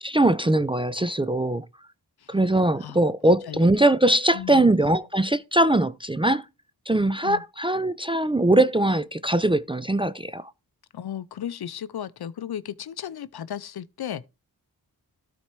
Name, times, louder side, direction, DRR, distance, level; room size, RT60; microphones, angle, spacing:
voice 1, 0.0-1.7 2.3-6.4 6.9-10.5, right 1 dB, 15° right, 0.4 m, -21 dB
voice 2, 4.3-4.7 7.2-7.4 10.9-14.3, left 9 dB, 65° left, 0.6 m, -35 dB
12.5 x 4.3 x 4.5 m
cardioid pair, 50°, 41 cm